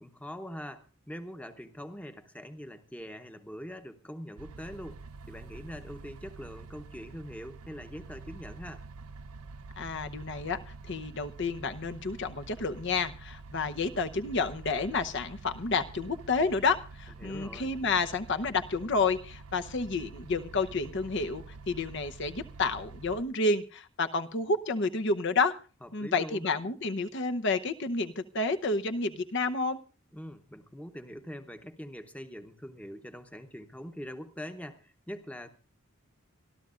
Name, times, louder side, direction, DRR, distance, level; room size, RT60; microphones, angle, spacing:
voice 1, 0.0-8.8 17.2-17.7 25.8-26.5 30.1-35.5, equal, 5° left, 7 dB, 0.9 m, -43 dB
sound 1, 4.4-23.2, right 4 dB, 80° right, 0.7 m, -47 dB
voice 2, 9.8-10.6 10.9-25.6 25.9-29.8, left 3 dB, 55° left, 8 dB, 0.8 m, -30 dB
25.5 x 12.5 x 2.5 m, 0.35 s
head